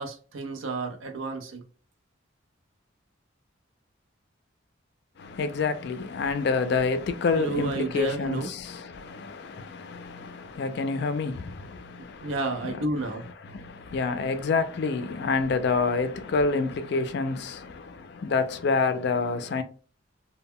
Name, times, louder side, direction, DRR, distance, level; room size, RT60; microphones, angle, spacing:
voice 1, 0.0-1.6 7.3-8.5 12.2-13.3, right 2 dB, 80° right, 0.6 m, -31 dB
voice 2, 5.2-19.6, left 4 dB, 55° left, 0.4 m, -28 dB
2.1 x 2.1 x 3.5 m
head